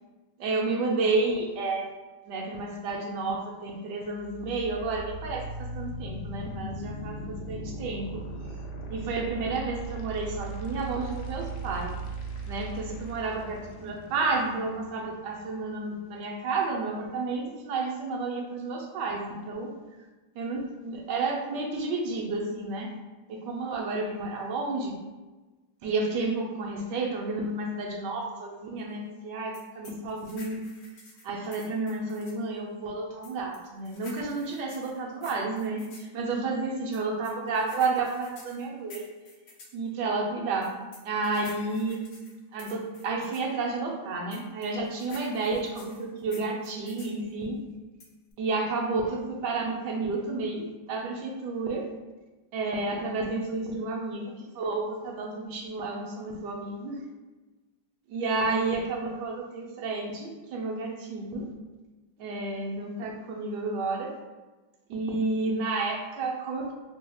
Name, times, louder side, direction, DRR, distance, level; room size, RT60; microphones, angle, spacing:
voice 1, 0.4-1.9 2.3-8.2 8.9-11.9 12.5-19.7 20.4-22.9 23.3-25.0 25.8-30.6 31.2-39.0 39.7-40.7 41.0-42.1 42.5-47.6 48.4-51.9 52.5-57.0 58.1-61.5 62.2-64.2 64.9-66.7, right 3 dB, 75° right, 0 dB, 1.2 m, -31 dB
sound 1, 4.1-16.1, right 3 dB, 75° left, 1.1 m, -38 dB
sound 2, 29.5-32.4 33.2-36.1 36.9-39.8 40.6-43.5 44.3-47.2 48.0-48.3, left 3 dB, 90° left, 1.4 m, -50 dB
3.4 x 3.2 x 2.3 m, 1.2 s
omnidirectional pair, 2.0 m